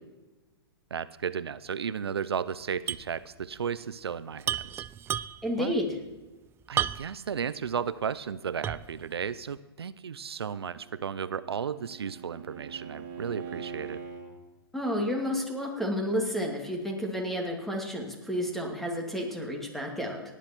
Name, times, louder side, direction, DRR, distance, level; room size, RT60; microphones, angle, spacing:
voice 1, 0.9-4.5 5.6-5.8 6.7-14.0, right 7 dB, 85° right, 16 dB, 0.6 m, -34 dB
sound 1, 2.9-3.1 3.4-3.5 4.4-5.6 6.8-7.3 7.8-7.9 8.6-9.0, right 10 dB, 20° right, 0.3 m, -31 dB
voice 2, 5.4-6.0 14.7-20.2, equal, ahead, 1 dB, 2.6 m, -31 dB
Bowed string instrument, 10.7-14.3, right 6 dB, 35° right, 3.0 m, -43 dB
18.0 x 10.0 x 4.5 m, 1.2 s
hypercardioid pair, 120°, 13 cm